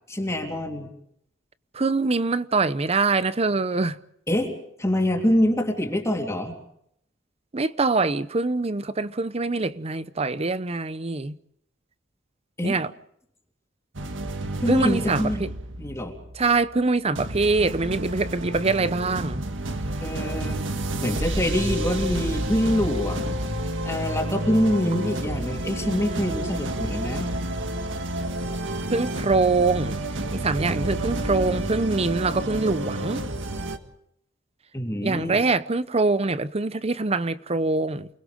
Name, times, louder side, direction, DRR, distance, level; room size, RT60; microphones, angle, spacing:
voice 1, 0.1-0.9 4.3-4.5 4.8-6.5 12.6-12.8 14.6-15.4 15.8-16.1 20.0-20.6 21.0-23.4 23.8-27.3 34.7-35.4, left 1 dB, 15° left, 3.2 m, -25 dB
voice 2, 1.7-4.0 7.5-11.4 12.6-12.9 14.7-15.5 16.3-19.4 28.9-30.0 30.3-33.2 35.0-38.1, right 3 dB, 35° right, 0.8 m, -24 dB
sound 1, 13.9-16.7 17.1-33.8, right 1 dB, 90° right, 1.8 m, -30 dB
29.0 x 20.5 x 5.3 m
head